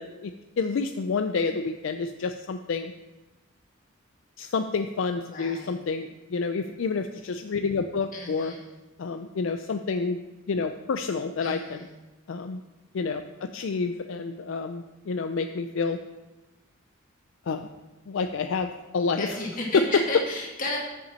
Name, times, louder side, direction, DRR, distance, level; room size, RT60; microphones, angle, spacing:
voice 1, 0.0-2.9 4.4-8.5 9.0-10.2 10.5-11.9 12.3-12.6 12.9-16.0 17.5-17.7 18.1-19.3 19.7-20.0, left 4 dB, 70° left, 8 dB, 0.4 m, -28 dB
voice 2, 5.3-5.8 8.1-8.6 11.4-11.9 19.2-20.8, left 2 dB, 40° left, -3 dB, 2.1 m, -33 dB
7.0 x 5.8 x 7.3 m, 1.1 s
head